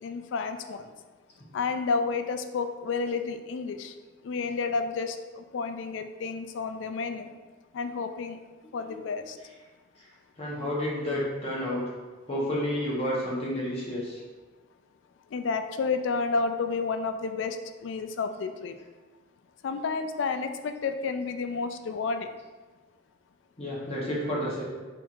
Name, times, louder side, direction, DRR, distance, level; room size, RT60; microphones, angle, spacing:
voice 1, 0.0-0.9 1.5-3.9 4.2-7.3 7.7-8.4 8.7-9.4 15.3-18.7 19.6-22.3, left 4 dB, 80° left, 8 dB, 0.3 m, -31 dB
voice 2, 8.8-9.5 10.0-10.1 10.4-11.9 12.3-14.2 23.6-24.6, equal, 35° left, -6 dB, 0.9 m, -31 dB
4.4 x 4.3 x 2.4 m, 1.3 s
head